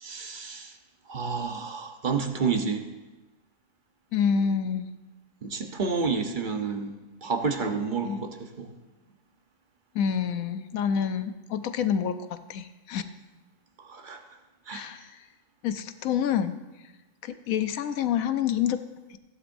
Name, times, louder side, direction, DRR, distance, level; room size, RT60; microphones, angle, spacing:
voice 1, 0.0-0.8 1.1-2.8 5.4-8.7 13.8-14.2 14.7-14.9, right 5 dB, 40° right, 5 dB, 1.0 m, -30 dB
voice 2, 4.1-4.9 8.0-8.2 9.9-12.2 12.5-13.0 14.7-15.1 15.6-16.6 17.2-18.8, left 8 dB, 85° left, 10 dB, 1.1 m, -27 dB
16.0 x 11.0 x 2.6 m, 1.1 s
omnidirectional pair, 1.4 m